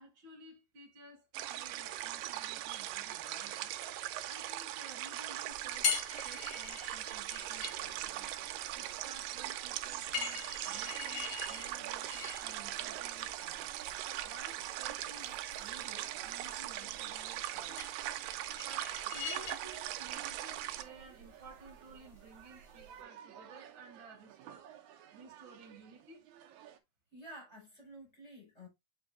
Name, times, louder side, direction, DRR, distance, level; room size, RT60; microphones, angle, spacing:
voice 1, 0.0-3.7 4.2-6.0 6.2-8.3 8.7-13.7 14.2-17.9 18.5-24.7 25.1-26.3, right 3 dB, 40° right, 2.4 m, -55 dB
sound 1, 1.3-20.8, right 13 dB, 90° right, 2.3 m, -40 dB
sound 2, 5.5-23.0, left 5 dB, 50° left, 3.0 m, -44 dB
sound 3, 7.3-26.8, right 9 dB, 70° right, 2.0 m, -56 dB
voice 2, 27.1-28.7, right 1 dB, 10° left, 4.9 m, -51 dB
7.6 x 5.6 x 2.4 m
omnidirectional pair, 3.9 m